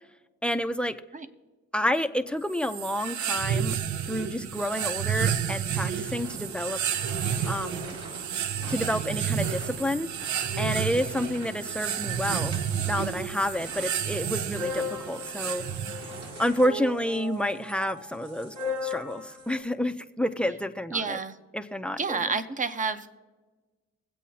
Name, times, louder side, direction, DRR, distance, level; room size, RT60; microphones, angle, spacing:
voice 1, 0.4-1.0 1.7-3.8 4.1-6.8 7.4-8.0 8.7-10.1 10.6-12.5 12.8-15.6 16.4-18.5 18.8-21.2 21.5-22.2, equal, 5° left, 11 dB, 0.6 m, -29 dB
sound 1, 2.5-16.4, right 8 dB, 75° right, 0.7 m, -31 dB
sound 2, 6.0-19.6, left 2 dB, 55° right, 2.5 m, -40 dB
voice 2, 20.9-21.4 22.0-23.1, right 4 dB, 25° right, 10 dB, 0.9 m, -29 dB
23.0 x 8.3 x 2.8 m, 1.2 s
cardioid pair, 90°, 30 cm